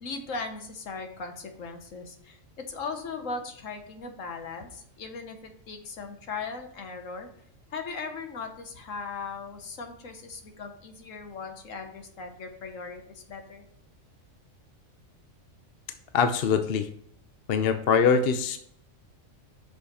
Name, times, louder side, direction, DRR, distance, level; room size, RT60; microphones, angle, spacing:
voice 1, 0.0-2.4 2.7-7.3 7.7-13.7, left 4 dB, 70° left, 5 dB, 1.4 m, -38 dB
voice 2, 16.1-16.9 17.5-18.6, left 6 dB, 55° left, 8 dB, 0.8 m, -23 dB
6.4 x 5.5 x 4.1 m, 0.67 s
omnidirectional pair, 1.4 m